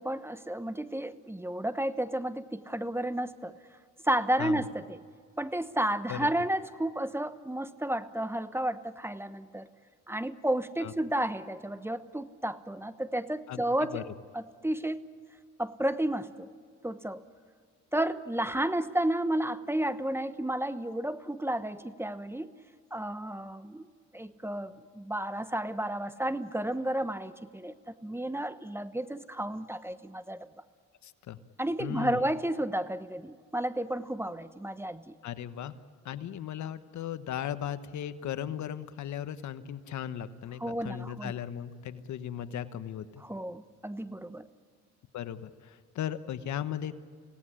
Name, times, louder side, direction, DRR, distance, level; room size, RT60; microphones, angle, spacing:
voice 1, 0.0-3.5 4.0-5.0 5.4-9.7 10.1-14.0 14.3-15.0 15.6-16.5 16.8-17.2 17.9-22.5 22.9-23.9 24.1-27.7 28.0-30.5 31.6-35.2 40.6-41.3 43.2-44.5, right 1 dB, 10° right, 13 dB, 1.0 m, -32 dB
voice 2, 13.5-14.1 31.0-31.4 31.8-32.2 35.2-35.7 36.0-43.2 45.1-47.0, left 10 dB, 70° left, 12 dB, 1.2 m, -37 dB
25.5 x 18.0 x 10.0 m, 2.1 s
cardioid pair, 90°, 30 cm